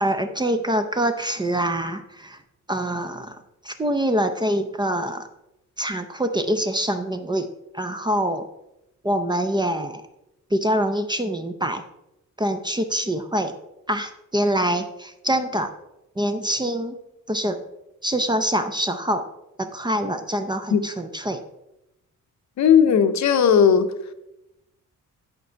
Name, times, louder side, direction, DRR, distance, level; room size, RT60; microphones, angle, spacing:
voice 1, 0.0-2.4 2.7-5.3 5.8-7.5 7.7-8.5 9.0-10.0 10.5-11.8 12.4-13.5 13.9-15.7 16.2-17.0 17.3-17.6 18.0-19.3 19.6-21.4, right 1 dB, 15° right, 8 dB, 0.5 m, -25 dB
voice 2, 22.6-23.9, left 7 dB, 60° left, 9 dB, 0.8 m, -16 dB
11.0 x 5.2 x 4.5 m, 0.88 s
cardioid pair, 150°, 32 cm